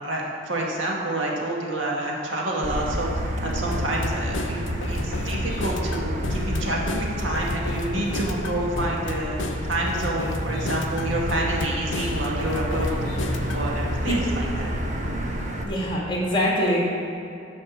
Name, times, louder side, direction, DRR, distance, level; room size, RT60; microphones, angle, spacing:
voice 1, 0.0-3.1 3.4-9.4 9.6-13.2 13.5-14.7, right 1 dB, 75° right, -2 dB, 2.0 m, -28 dB
Motor vehicle (road), 2.6-15.6, equal, 40° right, 1.2 m, -29 dB
sound 1, 3.7-13.6, left 2 dB, 70° left, 0.7 m, -34 dB
voice 2, 15.6-16.8, equal, 25° left, -4 dB, 2.3 m, -23 dB
10.5 x 5.2 x 7.3 m, 2.7 s
head